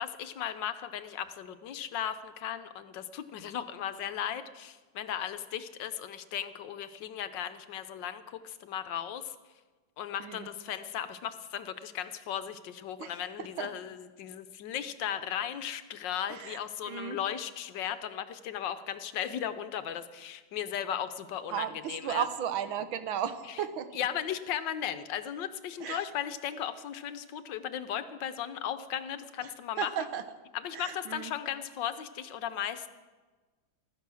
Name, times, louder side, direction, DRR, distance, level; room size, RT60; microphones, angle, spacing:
voice 1, 0.0-9.3 10.0-22.3 23.5-23.6 23.9-30.1 30.5-32.9, left 9 dB, 70° left, 12 dB, 1.3 m, -36 dB
voice 2, 16.9-17.2 21.5-23.9 25.8-26.0 29.8-30.2 30.7-31.3, right 9 dB, 80° right, 10 dB, 1.7 m, -34 dB
15.0 x 13.0 x 6.2 m, 1.3 s
omnidirectional pair, 2.2 m